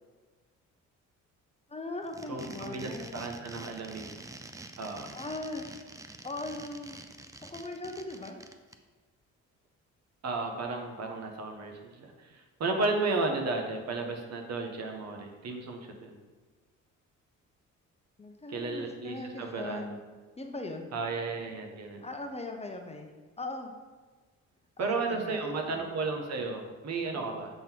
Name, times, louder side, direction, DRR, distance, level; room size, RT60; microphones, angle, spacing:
voice 1, 1.7-3.2 5.1-5.7 6.2-7.0 7.4-8.4 18.2-20.0 20.4-20.9 22.0-23.1 23.4-23.7 24.8-25.9 27.1-27.4, left 2 dB, 20° left, 4 dB, 0.7 m, -39 dB
sound 1, 2.0-8.7, right 2 dB, 10° right, 0.4 m, -46 dB
voice 2, 2.3-4.1 4.8-5.1 10.2-16.2 18.5-19.9 20.9-22.0 24.8-27.5, right 3 dB, 60° right, 3 dB, 1.2 m, -33 dB
7.6 x 3.9 x 4.5 m, 1.4 s
cardioid pair, 90°, 30 cm